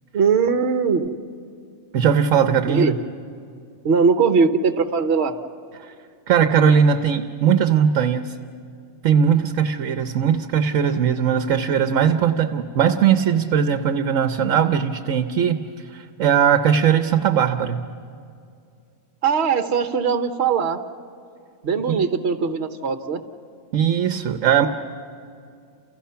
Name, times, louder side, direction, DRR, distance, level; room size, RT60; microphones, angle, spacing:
voice 1, 0.1-1.1 2.7-2.9 3.8-5.3 19.2-20.8 21.6-23.2, right 5 dB, 55° right, 7 dB, 1.3 m, -20 dB
voice 2, 1.9-3.0 5.8-5.9 6.3-8.3 9.0-15.6 15.9-17.8 21.9-22.0 23.7-24.7, right 8 dB, 75° right, 8 dB, 1.2 m, -19 dB
29.0 x 29.0 x 5.7 m, 2.4 s
omnidirectional pair, 1.3 m